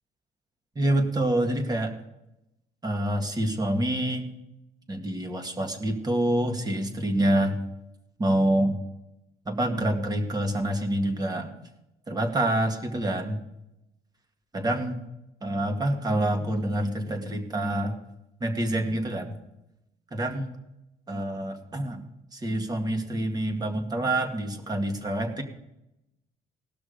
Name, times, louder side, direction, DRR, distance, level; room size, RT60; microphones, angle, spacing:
voice 1, 0.8-2.0 2.8-4.3 4.9-7.6 8.2-8.8 9.5-11.5 12.1-13.4 14.5-15.0 15.4-18.0 18.4-19.4 20.1-20.5 21.1-22.0 22.3-25.4, right 1 dB, 25° right, 5 dB, 2.0 m, -27 dB
18.0 x 6.1 x 5.2 m, 0.88 s
cardioid pair, 110°, 17 cm